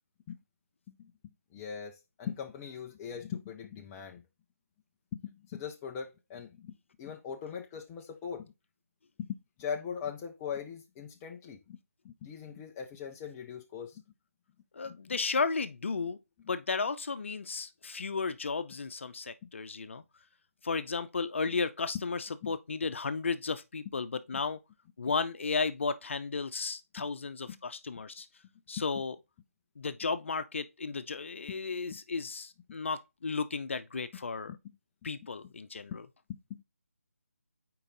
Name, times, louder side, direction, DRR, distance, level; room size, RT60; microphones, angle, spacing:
voice 1, 1.5-4.2 5.1-8.5 9.2-11.8 12.0-14.0 14.8-15.2 19.4-19.5 22.4-22.5 24.3-24.4 27.0-27.1 27.5-27.6 31.5-31.6 31.9-32.0 34.5-34.6 36.3-36.6, left 7 dB, 10° left, 0.3 m, -41 dB
voice 2, 14.7-16.2 16.5-20.0 20.6-24.6 25.0-28.3 28.7-29.2 29.8-34.5 35.0-36.0, left 4 dB, 55° left, 0.6 m, -34 dB
5.6 x 4.6 x 3.9 m
figure-of-eight pair, 165°, 8 cm